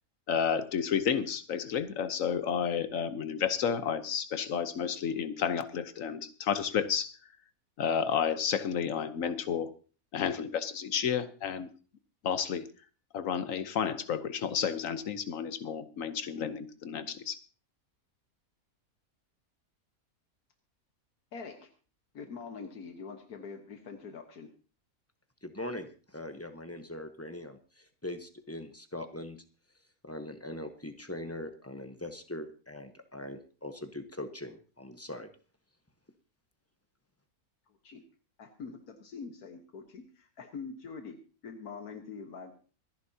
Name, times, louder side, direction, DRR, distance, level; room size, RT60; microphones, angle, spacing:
voice 1, 0.3-7.2 7.8-9.7 10.1-11.7 12.2-12.7 13.1-17.4, left 7 dB, 65° left, 11 dB, 1.3 m, -31 dB
voice 2, 21.3-21.7 22.1-24.5 37.8-38.0 38.4-41.2 41.4-42.5, left 5 dB, 85° left, 5 dB, 1.8 m, -44 dB
voice 3, 25.4-29.4 30.0-35.3, left 1 dB, 10° left, 7 dB, 0.8 m, -41 dB
25.5 x 10.5 x 2.8 m, 0.37 s
omnidirectional pair, 1.6 m